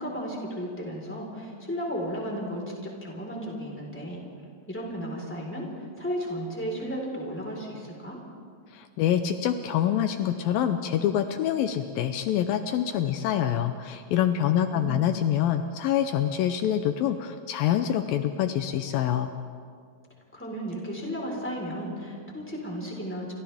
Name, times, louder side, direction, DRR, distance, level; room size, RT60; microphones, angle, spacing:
voice 1, 0.0-4.2 4.7-8.2 14.5-15.1 20.3-23.3, equal, 5° left, -2 dB, 4.0 m, -34 dB
voice 2, 8.7-19.3, left 10 dB, 80° left, 8 dB, 2.4 m, -26 dB
29.5 x 26.0 x 3.6 m, 2.1 s
omnidirectional pair, 4.2 m